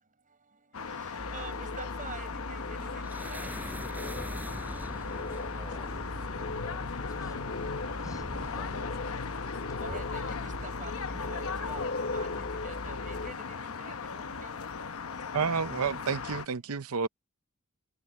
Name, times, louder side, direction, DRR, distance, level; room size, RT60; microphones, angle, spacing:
voice 1, 0.0-5.3 6.2-6.6 7.0-8.6 9.5-15.4 16.8-16.9, right 4 dB, 40° right, 5.4 m, -49 dB
sound 1, 0.7-16.5, left 5 dB, 75° left, 0.9 m, -38 dB
sound 2, 1.2-13.3, left 2 dB, 55° left, 3.1 m, -39 dB
sound 3, 2.6-13.0, equal, 10° right, 4.3 m, -46 dB
voice 2, 5.2-6.0 6.3-9.2, left 2 dB, 15° left, 5.8 m, -53 dB
voice 3, 15.3-17.1, right 5 dB, 85° right, 0.7 m, -30 dB
head